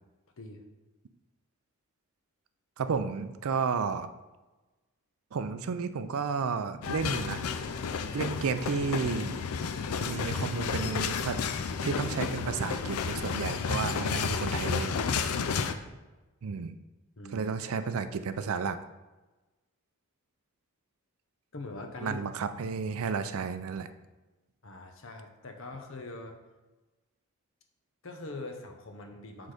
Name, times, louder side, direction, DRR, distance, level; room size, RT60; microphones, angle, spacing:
voice 1, 2.8-4.1 5.3-7.5 8.1-9.4 10.0-11.4 11.8-15.0 16.4-16.8 17.3-18.8 22.0-23.9, right 5 dB, 75° right, 11 dB, 0.4 m, -32 dB
sound 1, 6.8-15.7, left 6 dB, 85° left, 0.4 m, -32 dB
voice 2, 17.2-17.5 21.5-22.2 24.6-26.4 28.0-29.5, left 2 dB, 65° left, 4 dB, 0.8 m, -42 dB
6.2 x 3.9 x 4.9 m, 1.1 s
head